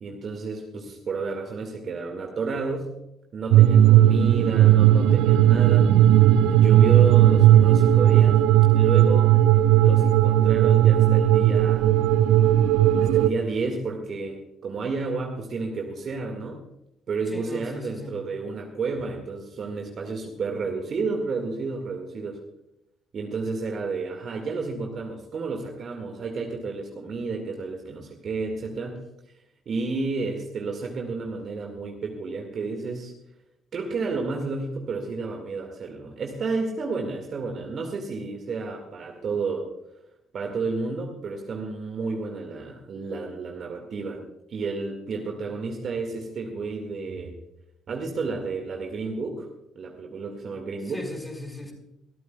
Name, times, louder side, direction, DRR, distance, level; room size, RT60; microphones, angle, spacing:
voice 1, 0.0-2.9 3.3-5.9 6.5-8.4 8.7-9.3 9.8-11.9 13.0-16.6 17.1-22.4 23.1-29.0 29.7-33.1 33.7-39.7 40.3-44.2 44.5-47.3 47.9-49.5 49.8-51.0, right 4 dB, 45° right, 2 dB, 1.9 m, -31 dB
sound 1, 3.5-13.3, right 12 dB, 65° right, 0.5 m, -16 dB
voice 2, 17.3-18.2 50.9-51.7, left 1 dB, 5° left, 2 dB, 5.1 m, -38 dB
25.0 x 13.5 x 2.3 m, 0.85 s
figure-of-eight pair, 50°, 0 cm